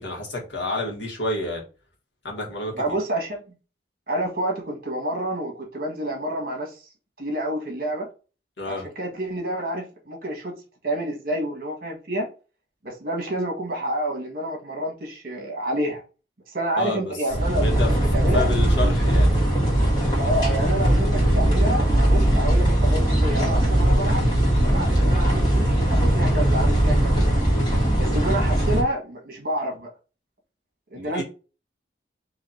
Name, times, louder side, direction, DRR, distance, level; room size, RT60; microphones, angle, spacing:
voice 1, 0.0-1.6 2.2-2.7 8.6-8.8 16.8-17.1 17.6-17.9 18.3-19.3 30.9-31.2, left 2 dB, 75° left, 1.6 m, -29 dB
voice 2, 2.8-3.4 4.1-6.9 7.2-8.1 8.7-10.5 10.8-12.3 12.8-16.0 16.5-17.6 18.1-18.5 20.2-24.2 24.6-27.2 28.0-29.9 30.9-31.2, right 1 dB, 50° right, 1.6 m, -28 dB
sound 1, 17.3-28.8, right 1 dB, 20° left, 1.7 m, -20 dB
4.1 x 2.9 x 4.3 m
head